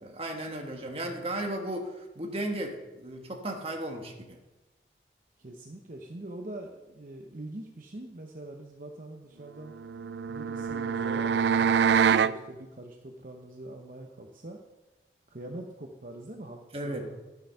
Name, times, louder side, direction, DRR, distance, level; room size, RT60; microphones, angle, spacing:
voice 1, 0.0-4.4 16.7-17.1, right 1 dB, 35° right, 2 dB, 1.4 m, -35 dB
voice 2, 5.4-9.7 10.3-14.6 15.3-17.2, right 1 dB, 50° right, 1 dB, 0.8 m, -43 dB
sax growl, 9.8-12.4, right 7 dB, 75° right, 0.3 m, -25 dB
12.5 x 7.0 x 5.6 m, 1.1 s
head